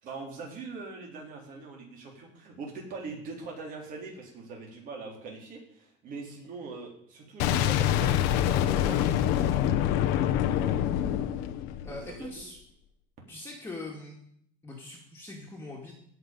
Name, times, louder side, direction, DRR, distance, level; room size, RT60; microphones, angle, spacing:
voice 1, 0.0-9.0 11.8-12.4, right 4 dB, 50° right, 0 dB, 3.9 m, -42 dB
Boom, 7.4-12.3, left 11 dB, 80° left, 1.0 m, -26 dB
voice 2, 11.8-12.6 13.3-14.2 14.6-15.9, left 2 dB, 15° left, -2 dB, 2.1 m, -42 dB
16.5 x 6.1 x 5.4 m, 0.67 s
cardioid pair, 135°, 18 cm